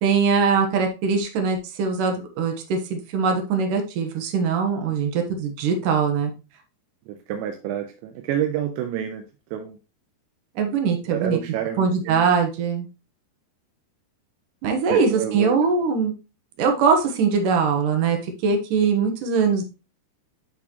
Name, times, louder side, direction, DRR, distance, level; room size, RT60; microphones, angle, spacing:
voice 1, 0.0-6.3 10.6-11.4 11.8-12.9 14.6-16.1 16.6-19.7, right 5 dB, 65° right, 4 dB, 2.2 m, -22 dB
voice 2, 7.1-9.2 9.5-9.8 11.1-12.3 14.9-15.6, right 10 dB, 85° right, 4 dB, 3.0 m, -28 dB
12.0 x 4.1 x 3.0 m, 0.30 s
omnidirectional pair, 5.1 m